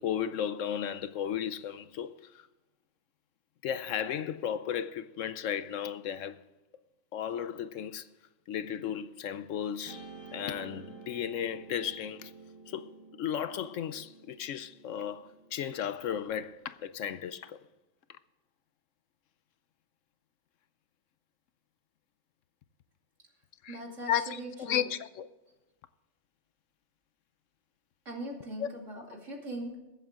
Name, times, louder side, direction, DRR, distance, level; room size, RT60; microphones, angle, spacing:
voice 1, 0.0-2.5 3.6-6.4 7.1-8.1 8.5-12.3 12.7-12.9 13.2-17.6 18.1-18.2 23.6-23.8 24.1-25.3 28.6-28.7, left 9 dB, 70° left, 1.0 m, -34 dB
Guitar, 9.9-16.3, right 4 dB, 20° right, 1.4 m, -51 dB
voice 2, 23.7-24.9 28.0-29.8, right 1 dB, 65° right, 3.0 m, -40 dB
22.0 x 7.9 x 3.7 m
omnidirectional pair, 1.4 m